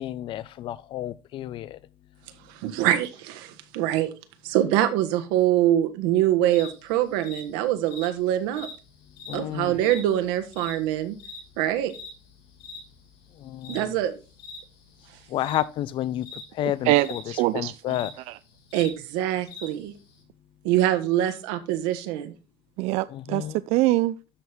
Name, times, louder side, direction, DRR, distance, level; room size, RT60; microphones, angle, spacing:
voice 1, 0.0-1.8 9.3-9.8 13.4-13.8 15.3-16.3 16.6-17.2 17.5-18.1 23.1-23.6, left 12 dB, 40° left, 0.6 m, -30 dB
voice 2, 2.5-4.1 4.4-8.7 9.3-11.2 11.6-11.9 13.7-14.2 18.7-19.9 20.6-22.3, right 12 dB, 80° right, 1.5 m, -24 dB
sound 1, 6.5-20.2, left 4 dB, 80° left, 5.1 m, -44 dB
voice 3, 16.8-18.0 18.3-18.4 22.8-23.4 23.7-24.1, right 18 dB, 55° right, 0.4 m, -23 dB
12.5 x 4.5 x 3.5 m
cardioid pair, 145°, 13 cm